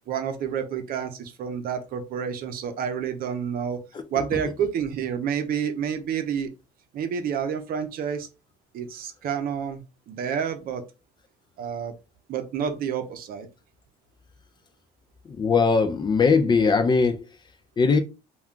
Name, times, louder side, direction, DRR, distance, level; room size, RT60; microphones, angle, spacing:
voice 1, 0.1-3.8 4.1-6.5 6.9-8.3 8.7-10.8 11.6-11.9 12.3-13.5, right 7 dB, 60° right, 0.6 m, -29 dB
voice 2, 15.4-17.2 17.8-18.0, left 4 dB, 25° left, 0.4 m, -20 dB
2.3 x 2.2 x 3.6 m
cardioid pair, 110°, 17 cm